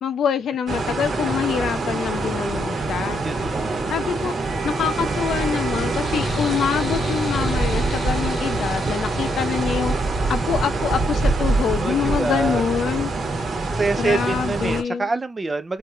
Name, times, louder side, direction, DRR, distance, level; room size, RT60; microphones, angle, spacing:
voice 1, 0.0-3.2 3.9-4.3 4.6-9.9 10.3-13.1 14.0-15.1, left 7 dB, 90° left, 0.7 m, -25 dB
sound 1, 0.7-14.8, right 3 dB, 50° right, 1.3 m, -25 dB
voice 2, 3.2-3.9 11.8-12.6 13.6-15.8, right 3 dB, 20° right, 0.4 m, -26 dB
Wind instrument woodwind instrument, 4.4-12.4, right 5 dB, 75° right, 1.0 m, -38 dB
sound 2, 6.0-10.5, left 4 dB, 50° left, 0.8 m, -35 dB
5.2 x 2.7 x 2.2 m
wide cardioid pair, 180°, 0 cm